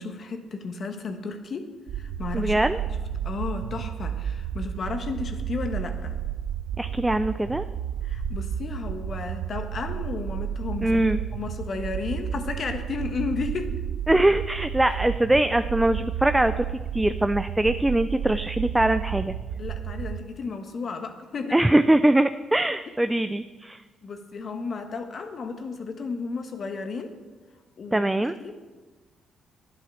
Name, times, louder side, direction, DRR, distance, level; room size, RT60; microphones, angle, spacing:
voice 1, 0.0-2.7 3.2-6.2 8.0-11.0 11.3-13.7 19.6-21.6 24.0-27.2 27.8-28.1 28.4-28.5, left 4 dB, 50° left, 6 dB, 1.4 m, -33 dB
sound 1, 1.9-20.2, right 9 dB, 80° right, 0.7 m, -32 dB
voice 2, 2.3-2.8 6.8-7.6 10.8-11.2 14.1-19.3 21.5-23.8 27.9-28.4, right 1 dB, 10° right, 11 dB, 0.4 m, -22 dB
10.5 x 8.8 x 6.4 m, 1.3 s
cardioid pair, 90°, 0 cm